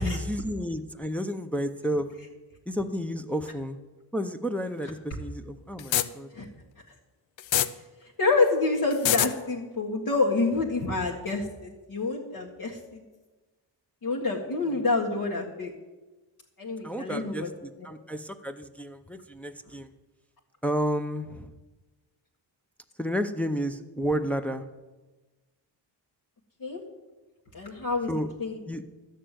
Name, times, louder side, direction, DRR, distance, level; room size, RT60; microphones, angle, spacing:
voice 1, 0.0-2.1 2.7-3.8 4.1-6.3 16.8-19.9 20.6-21.5 23.0-24.6 28.1-28.3 28.7-28.8, equal, 5° left, 5 dB, 0.6 m, -31 dB
sound 1, 5.8-6.1 7.4-7.7 8.9-9.3, left 11 dB, 80° left, 0.7 m, -23 dB
voice 2, 8.0-13.0 14.0-15.7 16.6-17.5 26.6-26.8 27.5-28.1 28.4-28.6, left 3 dB, 50° left, -3 dB, 1.7 m, -27 dB
12.5 x 6.7 x 9.2 m, 1.2 s
wide cardioid pair, 125°, 45 cm